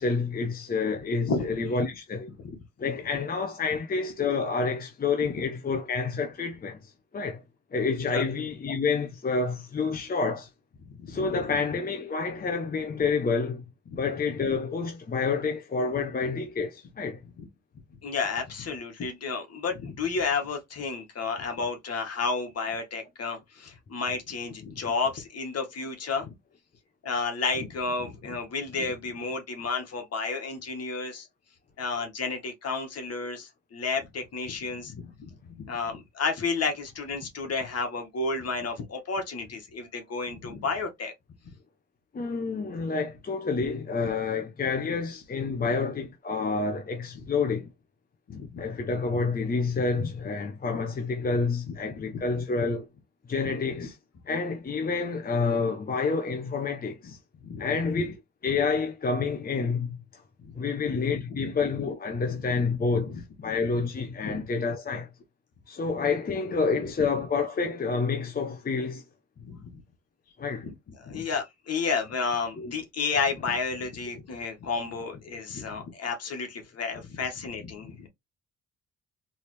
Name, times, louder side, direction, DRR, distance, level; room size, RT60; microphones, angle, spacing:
voice 1, 0.0-2.3 2.8-7.4 7.7-10.5 11.1-13.6 14.0-17.2 42.1-47.7 48.6-52.9 53.3-53.9 54.3-57.2 57.6-60.2 60.6-65.1 65.7-69.0 70.4-70.7 72.6-72.7, left 4 dB, 30° left, 0.8 m, -28 dB
voice 2, 10.9-11.4 13.9-14.0 17.4-17.5 18.0-26.3 27.0-31.3 31.8-41.1 45.5-45.7 48.3-48.6 51.7-52.2 53.8-53.9 57.4-58.0 60.4-60.5 60.9-61.0 61.3-61.5 62.4-62.6 63.5-63.6 64.2-64.4 69.4-69.8 70.6-70.7 71.0-78.1, left 4 dB, 55° left, 1.8 m, -32 dB
3.9 x 3.5 x 3.2 m
cardioid pair, 90°, 30 cm